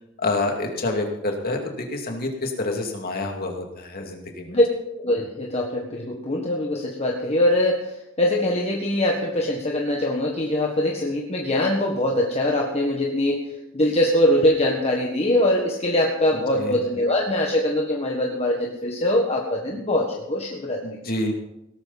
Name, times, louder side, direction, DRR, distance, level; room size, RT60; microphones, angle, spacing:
voice 1, 0.2-4.5 16.6-16.8 20.8-21.3, left 2 dB, 45° left, 2 dB, 2.5 m, -27 dB
voice 2, 5.0-13.5 13.7-21.0, left 1 dB, 30° left, -1 dB, 1.5 m, -22 dB
17.5 x 13.0 x 4.2 m, 0.85 s
head